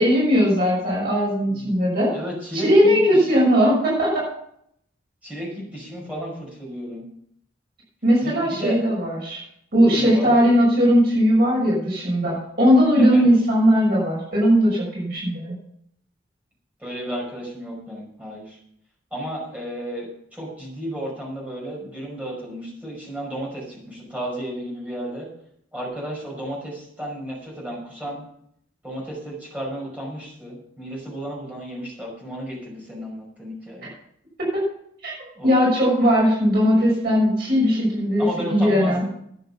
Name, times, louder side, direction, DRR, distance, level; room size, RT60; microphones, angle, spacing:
voice 1, 0.0-2.1 2.5-4.2 8.0-9.4 9.7-15.5 33.8-33.9 34.4-34.6 35.0-35.1 35.4-39.0, equal, 50° right, -4 dB, 6.5 m, -18 dB
voice 2, 2.1-3.3 5.2-7.0 8.2-8.8 9.9-10.3 13.0-13.3 16.8-18.6 19.1-25.3 25.7-28.2 28.8-33.9 35.3-35.7 38.2-39.1, right 1 dB, 10° right, -3 dB, 5.4 m, -33 dB
12.5 x 9.9 x 5.7 m, 0.71 s
head